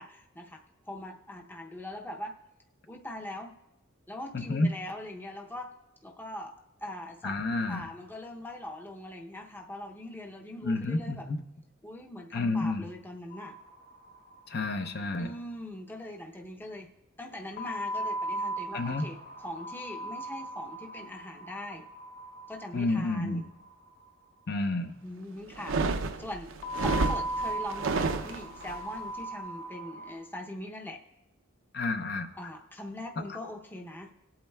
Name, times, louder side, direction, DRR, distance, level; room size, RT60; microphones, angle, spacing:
voice 1, 0.0-2.3 2.9-3.6 4.1-5.7 6.0-6.6 6.8-7.4 7.7-11.3 11.8-13.6 15.2-16.9 17.2-21.8 22.5-23.5 25.0-25.8 26.2-26.5 26.7-31.0 32.4-34.1, left 1 dB, 10° left, 1 dB, 0.6 m, -41 dB
voice 2, 4.3-4.7 7.2-7.9 10.6-11.4 12.3-12.9 14.5-15.4 18.7-19.1 22.7-23.4 24.5-24.9 31.7-32.3 33.2-33.4, left 2 dB, 55° left, 7 dB, 0.6 m, -30 dB
sound 1, 13.3-14.3 14.6-14.7 14.9-15.0 17.6-23.7 26.6-30.2, right 1 dB, 30° left, 1.1 m, -37 dB
sound 2, 25.5-28.8, right 3 dB, 70° right, 0.6 m, -30 dB
19.0 x 8.6 x 2.3 m, 0.92 s
head